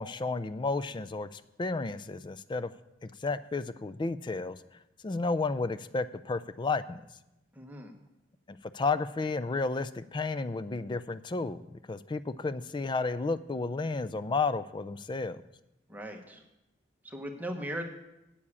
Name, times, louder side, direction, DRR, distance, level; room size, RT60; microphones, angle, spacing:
voice 1, 0.0-2.7 3.0-4.6 5.0-7.0 8.5-15.4, left 3 dB, 25° left, 14 dB, 0.4 m, -32 dB
voice 2, 7.5-7.9 15.9-16.4 17.0-17.8, equal, 10° right, 2 dB, 1.1 m, -38 dB
8.6 x 7.4 x 8.3 m, 0.91 s
head